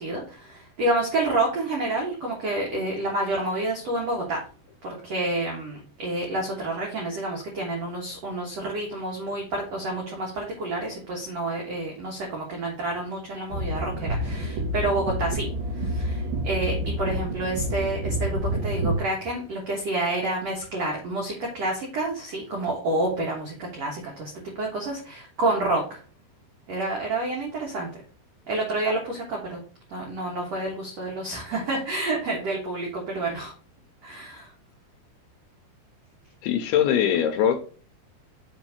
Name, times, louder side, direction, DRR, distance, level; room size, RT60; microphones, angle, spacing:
voice 1, 0.0-4.4 4.8-24.3 24.6-26.0 26.7-27.9 28.5-29.6 29.9-33.5 34.0-34.5, right 2 dB, 85° right, -1 dB, 1.4 m, -29 dB
sound 1, 13.5-19.0, right 1 dB, 65° right, 2.4 m, -28 dB
voice 2, 36.4-37.6, left 9 dB, 80° left, 7 dB, 2.5 m, -22 dB
7.2 x 2.6 x 5.8 m, 0.41 s
omnidirectional pair, 5.0 m